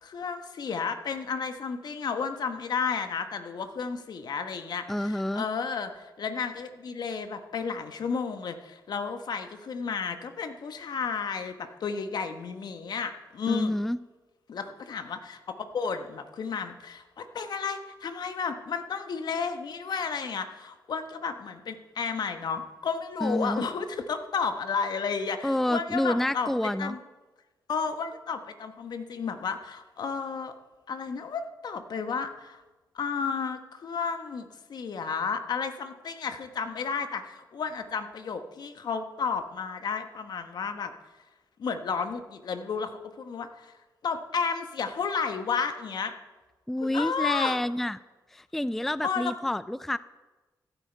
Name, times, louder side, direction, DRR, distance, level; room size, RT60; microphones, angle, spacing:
voice 1, 0.0-13.7 14.5-27.0 27.7-30.5 30.9-32.6 32.9-40.9 41.6-43.7 44.0-46.1 46.8-47.6 49.0-49.3, left 5 dB, 65° left, 8 dB, 1.2 m, -32 dB
voice 2, 4.9-5.5 13.5-14.0 23.2-23.7 25.4-27.0 46.7-48.0 48.3-50.0, left 1 dB, 5° left, 16 dB, 0.3 m, -28 dB
15.0 x 9.0 x 4.5 m, 1.2 s
cardioid pair, 65°, 8 cm